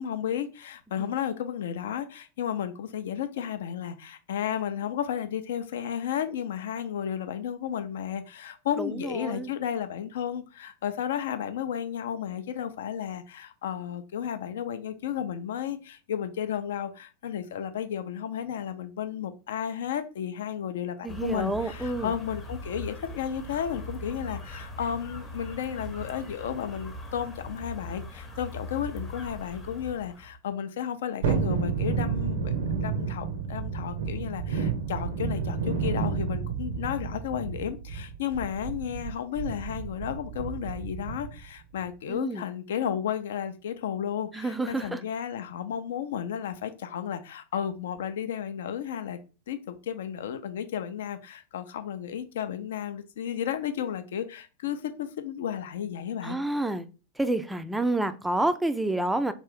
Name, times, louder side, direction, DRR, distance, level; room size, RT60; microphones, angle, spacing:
voice 1, 0.0-49.2 49.5-56.4, left 9 dB, 60° left, 0.4 m, -33 dB
voice 2, 8.8-9.5 21.0-22.1 42.1-42.4 44.3-45.0 56.2-56.9 57.2-59.3, right 2 dB, 5° right, 0.4 m, -29 dB
sound 1, 21.1-30.4, left 1 dB, 20° left, 0.7 m, -40 dB
Thunderstorm, 31.2-41.4 41.8-41.9, right 6 dB, 55° right, 0.6 m, -31 dB
3.5 x 2.5 x 3.4 m
figure-of-eight pair, 90°, 0 cm